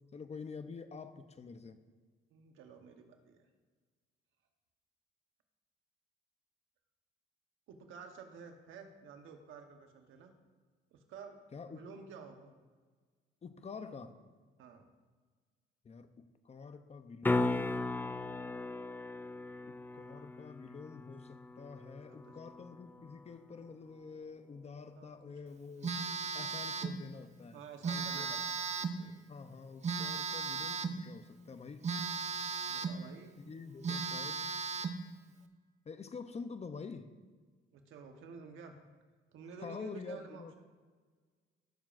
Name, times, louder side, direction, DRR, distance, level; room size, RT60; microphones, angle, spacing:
voice 1, 0.1-1.8 11.5-11.9 13.4-14.2 15.8-17.6 19.7-25.9 26.3-27.6 28.1-28.3 29.3-31.8 33.4-34.5 35.9-37.1 39.6-40.5, left 5 dB, 35° left, 10 dB, 0.7 m, -47 dB
voice 2, 2.3-3.4 7.7-10.3 10.9-11.3 11.6-12.5 14.6-14.9 21.5-21.7 22.0-22.3 25.0-25.2 26.8-26.9 27.5-28.6 28.9-29.1 32.6-33.3 37.7-38.7 39.3-40.7, right 5 dB, 85° right, 5 dB, 1.1 m, -51 dB
sound 1, 17.2-23.3 27.9-28.0, left 2 dB, 10° left, 0.3 m, -37 dB
Telephone, 25.8-27.0 27.8-29.0 29.8-31.0 31.8-33.0 33.5-33.6 33.8-35.0, right 5 dB, 35° right, 0.6 m, -36 dB
15.0 x 7.0 x 2.6 m, 1.5 s
cardioid pair, 90°, 20 cm